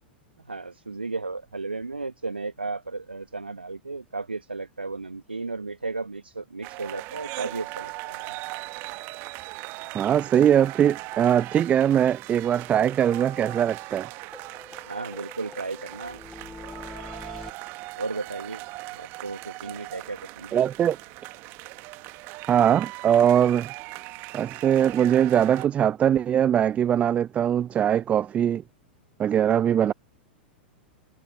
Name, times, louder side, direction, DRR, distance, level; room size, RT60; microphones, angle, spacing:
voice 1, 0.5-8.3 14.8-16.2 18.0-18.6 18.9-20.6 29.8-29.9, right 3 dB, 85° right, 1.4 m, -34 dB
sound 1, 6.6-25.7, right 24 dB, 40° right, 1.8 m, -39 dB
voice 2, 9.9-14.1 20.5-21.0 22.5-23.7 24.3-28.6 29.2-29.9, right 9 dB, 25° right, 0.6 m, -21 dB
sound 2, 11.1-11.2 11.5-11.6 11.9-12.0 12.3-12.4 12.7-14.0 14.3-17.5, left 3 dB, 10° left, 3.2 m, -45 dB
figure-of-eight pair, 95°, 5 cm